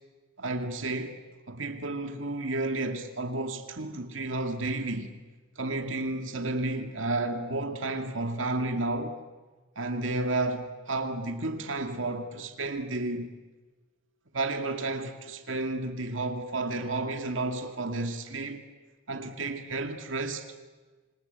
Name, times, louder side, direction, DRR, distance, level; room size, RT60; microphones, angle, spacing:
voice 1, 0.4-1.2 1.5-5.1 5.6-9.2 9.8-13.3 14.3-18.6 19.1-20.5, right 2 dB, 80° right, 2.1 m, -32 dB
27.0 x 26.0 x 8.1 m
head